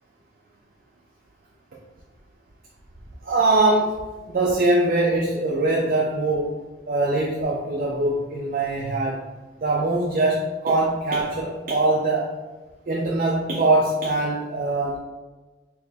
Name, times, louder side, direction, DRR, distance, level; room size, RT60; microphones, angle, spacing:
voice 1, 3.2-4.0 4.3-6.5 6.9-9.2 9.6-12.3 12.9-15.0, right 2 dB, 55° right, -2 dB, 0.5 m, -22 dB
4.3 x 2.1 x 3.2 m, 1.2 s
head